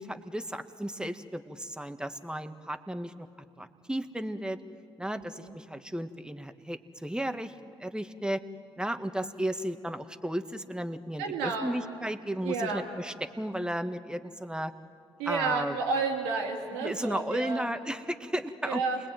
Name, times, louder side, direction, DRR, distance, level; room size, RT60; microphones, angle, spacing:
voice 1, 0.0-3.3 3.6-4.6 5.0-7.5 7.8-8.4 8.8-14.7 15.3-15.8 16.8-18.8, right 1 dB, 5° right, 8 dB, 1.8 m, -34 dB
voice 2, 11.2-11.7 12.4-12.8 15.2-17.7 18.6-19.0, right 4 dB, 85° right, 2 dB, 2.7 m, -31 dB
29.0 x 21.0 x 9.3 m, 2.4 s
hypercardioid pair, 45°, 13 cm